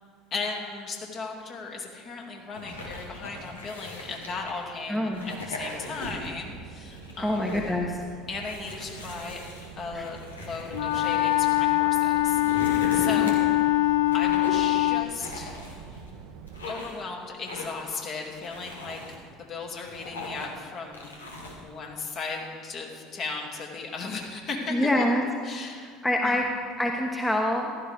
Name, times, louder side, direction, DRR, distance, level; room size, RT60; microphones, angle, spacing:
voice 1, 0.3-7.5 8.3-9.4 9.8-13.3 14.1-15.6 16.7-19.0 19.4-21.1 21.6-25.0 25.4-25.9 26.2-26.4, left 4 dB, 45° left, 0 dB, 2.8 m, -36 dB
sound 1, 2.5-4.6 5.1-6.4 6.8-7.8 8.3-11.6 12.1-13.6 14.1-14.7 15.2-16.1 16.5-17.0 17.4-17.9 18.3-19.2 19.6-20.6 20.9-21.6, left 1 dB, 90° left, 1.9 m, -39 dB
voice 2, 4.9-5.3 7.2-8.0 9.9-10.1 13.2-13.3 24.7-25.2 25.6-26.4 26.8-27.8, left 1 dB, 10° left, 1 dB, 1.2 m, -26 dB
sound 2, 6.0-16.7, right 7 dB, 65° right, 0.8 m, -46 dB
Wind instrument woodwind instrument, 10.7-15.1, left 16 dB, 75° left, 0.3 m, -23 dB
15.0 x 12.5 x 3.6 m, 2.1 s
hypercardioid pair, 70°, 0 cm